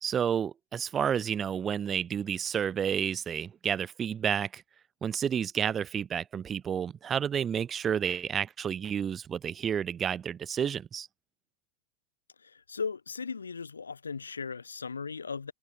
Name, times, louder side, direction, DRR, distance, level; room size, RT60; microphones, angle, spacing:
voice 1, 0.0-4.6 5.0-11.1, right 8 dB, 25° right, 0.3 m, -30 dB
voice 2, 12.4-15.5, left 5 dB, 75° left, 0.8 m, -37 dB
figure-of-eight pair, 90°, 0 cm